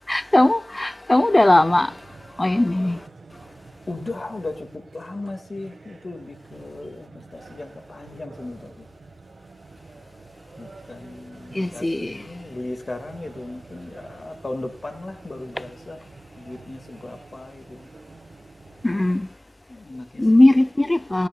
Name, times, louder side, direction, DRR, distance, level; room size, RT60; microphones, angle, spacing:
voice 1, 0.1-2.0 2.4-3.0 11.5-12.3 18.8-19.3 20.2-21.3, left 1 dB, 30° left, 0.6 m, -19 dB
sound 1, 1.6-19.2, right 3 dB, 70° right, 1.8 m, -47 dB
voice 2, 3.9-8.9 10.6-16.0 16.4-17.9 19.7-20.3, left 2 dB, 55° left, 2.2 m, -36 dB
19.5 x 10.5 x 2.4 m
cardioid pair, 45°, 0 cm